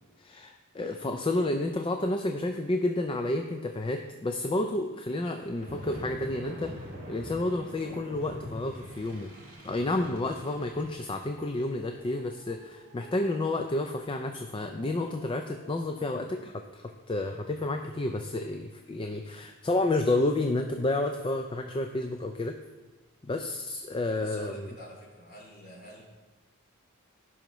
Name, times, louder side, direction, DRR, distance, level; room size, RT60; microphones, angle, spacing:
voice 1, 0.2-9.3 9.6-22.6 23.2-24.7, left 2 dB, 25° left, 5 dB, 0.4 m, -30 dB
sound 1, 5.5-16.1, equal, 45° right, 2.6 m, -46 dB
voice 2, 24.1-26.0, left 1 dB, 40° left, -3 dB, 2.6 m, -47 dB
15.5 x 5.6 x 3.1 m, 1.2 s
head